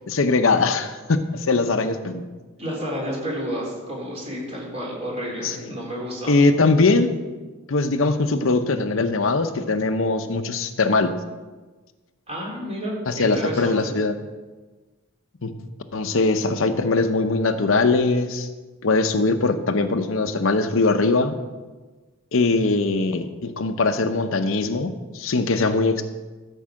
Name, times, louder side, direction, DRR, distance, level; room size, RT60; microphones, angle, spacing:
voice 1, 0.1-2.2 5.4-5.6 6.3-7.1 7.7-11.1 13.1-14.2 15.4-15.5 15.9-18.5 18.8-21.4 22.3-26.0, left 3 dB, 65° left, 8 dB, 0.7 m, -21 dB
voice 2, 2.6-6.3 12.3-13.9, equal, 30° right, -3 dB, 3.7 m, -30 dB
14.0 x 5.5 x 7.5 m, 1.3 s
head